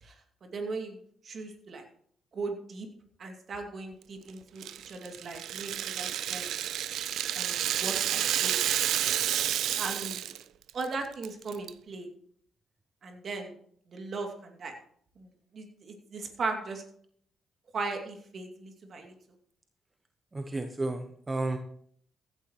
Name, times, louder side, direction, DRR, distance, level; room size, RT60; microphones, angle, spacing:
voice 1, 0.4-1.0 1.2-1.8 2.3-2.9 3.2-6.5 7.3-8.6 9.8-10.3 10.7-12.1 13.0-13.5 13.9-14.7 15.2-15.3 15.5-16.8 17.7-19.1, right 3 dB, 55° right, 4 dB, 2.6 m, -38 dB
Rattle (instrument), 4.6-10.4 10.7-10.8 11.2-11.7, right 11 dB, 70° right, 0.5 m, -30 dB
voice 2, 20.3-21.6, right 2 dB, 30° right, 7 dB, 1.2 m, -32 dB
15.5 x 12.0 x 3.1 m, 0.62 s
hypercardioid pair, 45°, 0 cm